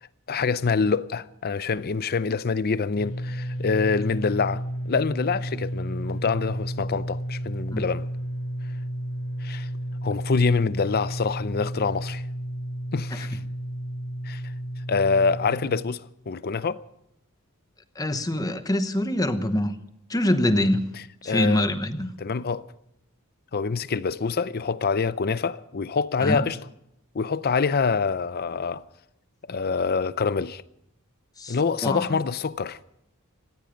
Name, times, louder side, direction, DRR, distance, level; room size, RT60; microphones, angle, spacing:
voice 1, 0.3-8.1 9.4-9.7 10.0-12.2 12.9-13.4 14.2-14.5 14.9-16.8 21.3-21.7 22.2-22.7 23.5-26.6 27.1-28.8 29.5-30.6 31.5-32.8, left 5 dB, 45° left, 0.6 m, -26 dB
sound 1, 2.9-15.8, equal, 85° left, 4.0 m, -32 dB
voice 2, 18.0-19.8 20.1-20.8 21.2-22.1 26.2-26.4 31.4-31.6 31.8-32.2, left 1 dB, 15° left, 1.0 m, -24 dB
18.0 x 15.5 x 5.2 m
head